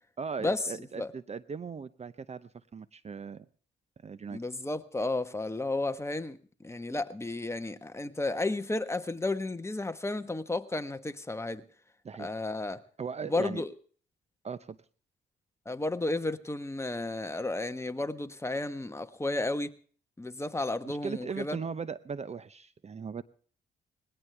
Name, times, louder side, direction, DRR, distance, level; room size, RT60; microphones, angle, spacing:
voice 1, 0.2-3.5 4.0-4.4 12.0-12.3 13.0-13.6 14.4-14.8 20.8-23.2, right 5 dB, 35° right, 0.8 m, -38 dB
voice 2, 4.3-6.4 6.6-11.6 12.2-12.8 13.3-13.7 15.7-19.7 20.2-21.6, left 2 dB, 15° left, 1.3 m, -32 dB
20.5 x 17.0 x 3.4 m
cardioid pair, 90°, 20 cm